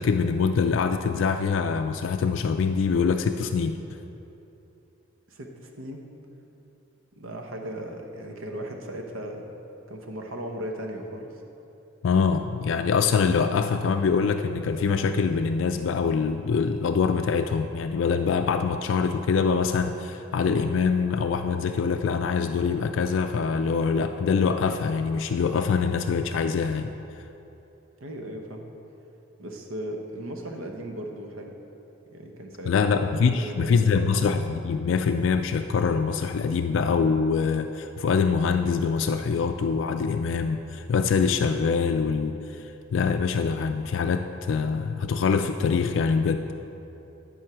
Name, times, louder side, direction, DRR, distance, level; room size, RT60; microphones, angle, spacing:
voice 1, 0.0-3.8 12.0-26.9 32.7-46.4, left 5 dB, 65° left, 7 dB, 0.3 m, -24 dB
voice 2, 5.3-6.1 7.1-9.5 9.9-11.3 28.0-28.7 29.4-31.5 32.1-33.0 33.4-34.2, right 1 dB, 85° right, 3 dB, 1.0 m, -37 dB
10.5 x 5.5 x 4.7 m, 2.9 s
head